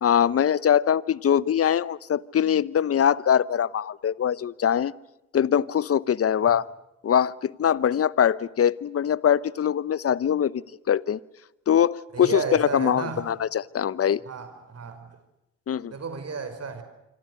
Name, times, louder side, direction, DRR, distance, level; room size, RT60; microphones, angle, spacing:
voice 1, 0.0-4.9 5.3-6.6 7.0-11.2 11.7-14.2 15.7-15.9, left 9 dB, 40° left, 20 dB, 0.9 m, -22 dB
voice 2, 12.1-13.2 14.3-15.2 15.9-16.8, right 5 dB, 45° right, 9 dB, 5.4 m, -33 dB
26.5 x 25.5 x 6.5 m, 0.91 s
hypercardioid pair, 50°, 36 cm